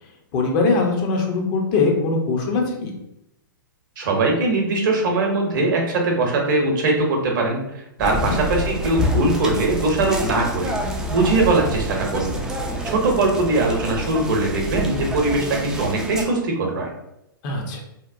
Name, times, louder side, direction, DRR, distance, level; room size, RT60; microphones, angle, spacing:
voice 1, 0.3-2.9 8.1-8.3 17.4-17.8, left 3 dB, 35° left, 1 dB, 0.6 m, -21 dB
voice 2, 4.0-10.7 11.1-12.3 12.8-16.9, right 2 dB, 60° right, 1 dB, 0.7 m, -21 dB
sound 1, 8.0-16.2, equal, 5° right, 0.3 m, -27 dB
2.8 x 2.0 x 2.5 m, 0.82 s
hypercardioid pair, 115°, 12 cm